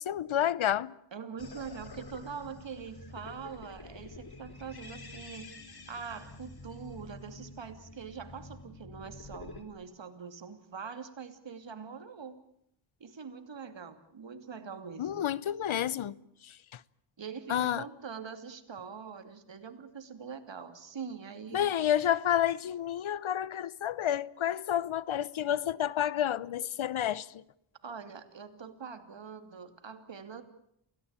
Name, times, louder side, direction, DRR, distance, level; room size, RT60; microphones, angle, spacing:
voice 1, 0.0-0.9 15.0-16.2 16.7-16.8 17.5-17.8 21.5-27.3, left 10 dB, 80° left, 0.9 m, -30 dB
voice 2, 1.1-5.6 5.9-12.4 13.0-15.3 17.2-21.7 27.8-30.4, right 6 dB, 65° right, 2.9 m, -43 dB
sound 1, 1.4-9.6, left 2 dB, 50° left, 3.5 m, -48 dB
28.5 x 17.5 x 8.9 m
wide cardioid pair, 90°, 47 cm